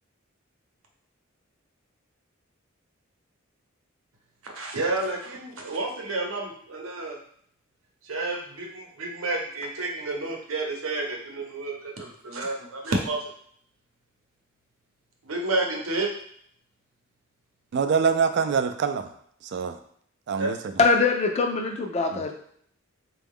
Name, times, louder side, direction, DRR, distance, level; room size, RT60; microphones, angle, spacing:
voice 1, 4.4-7.2 8.1-13.2 15.2-16.1 20.4-20.5, right 2 dB, 80° right, 1 dB, 0.8 m, -30 dB
voice 2, 17.7-19.1 19.4-19.7 20.3-20.7 22.1-22.2, right 6 dB, 55° right, 9 dB, 0.3 m, -25 dB
voice 3, 20.8-22.3, left 4 dB, 30° left, 4 dB, 0.4 m, -22 dB
4.1 x 2.3 x 3.5 m, 0.64 s
head